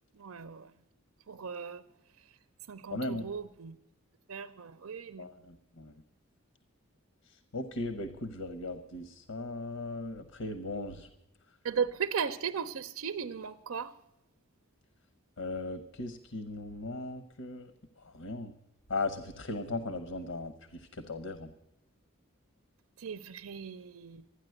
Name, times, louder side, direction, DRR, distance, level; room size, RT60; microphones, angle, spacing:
voice 1, 0.1-0.7 1.3-1.8 2.2-2.4 2.7-3.8 4.3-5.3 11.6-14.0 23.0-24.3, right 6 dB, 85° right, 12 dB, 0.6 m, -37 dB
voice 2, 2.9-3.3 5.2-5.9 7.5-11.1 15.4-17.7 18.0-18.5 18.9-21.5, left 2 dB, 85° left, 11 dB, 1.0 m, -37 dB
13.0 x 9.9 x 7.8 m, 0.87 s
head